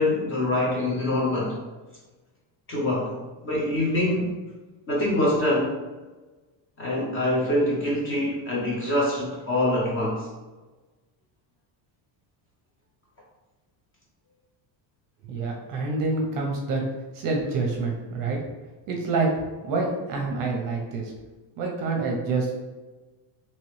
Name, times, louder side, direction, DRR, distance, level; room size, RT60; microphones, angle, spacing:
voice 1, 0.0-1.6 2.7-3.1 3.4-4.3 4.9-5.8 6.8-10.3, left 1 dB, 25° left, -4 dB, 0.6 m, -24 dB
voice 2, 15.2-16.8 17.1-18.4 18.9-19.3 19.6-21.1 21.6-22.5, right 3 dB, 45° right, 0 dB, 0.6 m, -27 dB
2.9 x 2.9 x 3.1 m, 1.2 s
cardioid pair, 180°, 48 cm